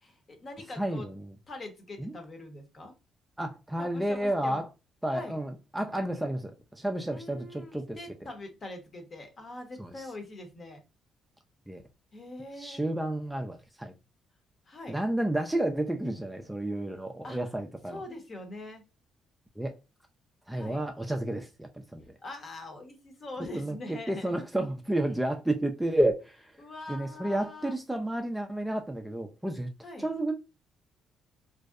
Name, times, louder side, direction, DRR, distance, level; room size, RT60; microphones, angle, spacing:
voice 1, 0.0-1.1 1.5-2.9 3.8-4.6 5.1-5.4 7.0-10.8 12.1-12.9 14.7-15.0 17.2-17.4 17.9-18.8 20.5-20.8 22.2-24.3 26.6-27.7 29.8-30.1, left 2 dB, 40° left, 0.8 m, -43 dB
voice 2, 0.8-1.3 2.0-2.1 3.4-4.7 5.0-8.0 9.8-10.1 11.7-11.8 12.6-13.9 14.9-18.0 19.6-19.8 20.5-22.2 23.5-26.5 26.9-29.7 30.0-30.3, right 1 dB, 5° right, 0.3 m, -31 dB
2.6 x 2.1 x 2.3 m
cardioid pair, 90°, 0 cm